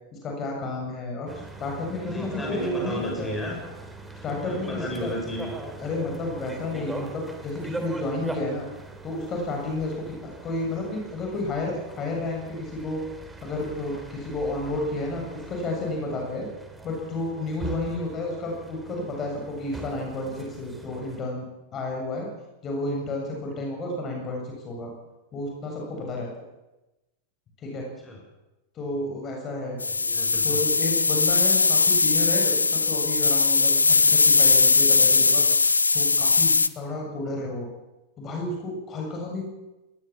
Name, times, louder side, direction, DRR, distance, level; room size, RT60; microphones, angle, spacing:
voice 1, 0.2-1.3 1.6-3.3 4.2-5.1 5.8-8.7 9.0-13.0 13.4-16.5 16.8-21.5 21.7-22.3 22.6-24.9 25.3-26.5 27.6-27.9 28.7-29.8 30.4-35.5 35.9-37.7 38.2-39.5, left 2 dB, 30° left, 1 dB, 7.5 m, -31 dB
sound 1, 1.3-21.2, right 2 dB, 10° right, 3.3 m, -41 dB
voice 2, 2.1-3.6 4.4-5.5 9.9-10.1 28.0-28.2 29.9-30.6, left 1 dB, 10° left, 0 dB, 7.4 m, -34 dB
sound 2, 29.8-36.7, left 4 dB, 80° left, 0.7 m, -20 dB
21.5 x 20.0 x 7.4 m, 1.0 s
figure-of-eight pair, 90°, 0 cm